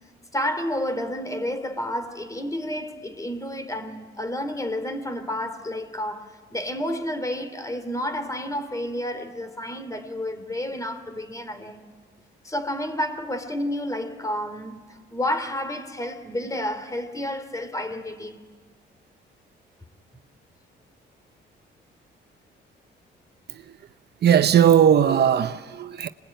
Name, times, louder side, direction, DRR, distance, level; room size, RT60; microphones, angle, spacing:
voice 1, 0.3-11.8 12.4-18.4, left 1 dB, 15° left, 3.0 m, -30 dB
voice 2, 24.2-26.1, right 9 dB, 55° right, 0.7 m, -18 dB
27.0 x 20.5 x 9.2 m
cardioid pair, 90°, 20 cm